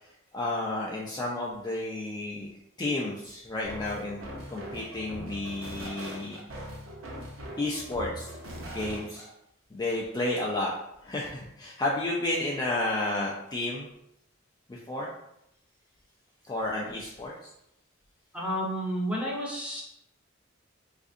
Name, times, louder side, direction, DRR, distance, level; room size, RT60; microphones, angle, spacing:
voice 1, 0.0-2.5 2.8-6.4 7.6-8.3 8.7-9.3 9.7-10.7 11.0-13.9 14.7-15.1 16.5-17.3, left 2 dB, 20° left, -3 dB, 0.3 m, -31 dB
sound 1, 3.6-9.3, equal, 70° right, 0.8 m, -41 dB
voice 2, 18.3-19.8, equal, 5° right, -4 dB, 0.8 m, -31 dB
3.7 x 2.5 x 2.4 m, 0.80 s
head